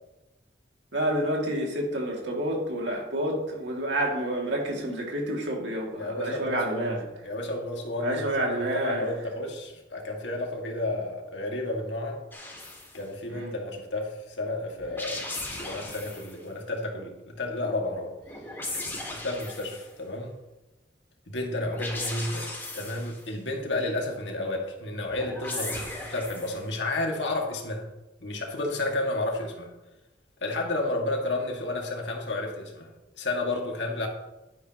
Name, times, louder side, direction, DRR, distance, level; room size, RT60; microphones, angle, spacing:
voice 1, 0.9-7.0 8.0-9.1 13.3-13.5, right 1 dB, 90° right, -1 dB, 2.4 m, -29 dB
voice 2, 6.0-12.2 12.9-18.1 18.7-20.4 21.3-27.9 28.2-29.7 30.4-32.9 33.2-34.1, left 2 dB, 85° left, 0 dB, 2.1 m, -32 dB
sound 1, 12.3-13.0 14.8-16.4 18.2-19.9 21.6-23.3 25.1-26.7, left 2 dB, 10° left, 2.3 m, -37 dB
11.5 x 9.9 x 3.0 m, 1.0 s
head